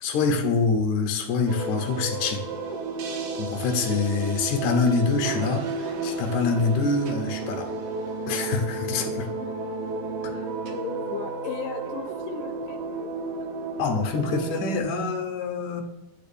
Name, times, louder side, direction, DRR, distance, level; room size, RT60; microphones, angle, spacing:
voice 1, 0.0-2.5 3.4-7.7 8.3-9.3 10.2-10.3 13.8-15.8, left 4 dB, 65° left, 3 dB, 2.4 m, -25 dB
sound 1, 1.5-14.8, right 3 dB, 80° right, 2.9 m, -32 dB
voice 2, 3.7-4.3 9.0-9.6 10.7-13.1, left 8 dB, 80° left, 6 dB, 2.5 m, -38 dB
9.6 x 3.9 x 7.1 m, 0.93 s
omnidirectional pair, 3.9 m